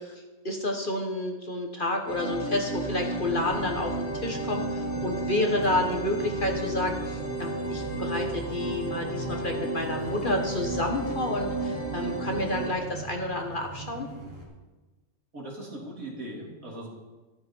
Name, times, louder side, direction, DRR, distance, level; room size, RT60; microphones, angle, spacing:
voice 1, 0.0-14.1, left 1 dB, 35° left, 3 dB, 1.4 m, -30 dB
sound 1, 2.1-12.7, right 2 dB, 85° left, 2.5 m, -33 dB
sound 2, 3.2-14.4, right 4 dB, 40° right, 3.0 m, -42 dB
voice 2, 15.3-16.9, right 1 dB, 65° right, -2 dB, 3.4 m, -39 dB
13.5 x 12.5 x 4.5 m, 1.2 s
omnidirectional pair, 1.5 m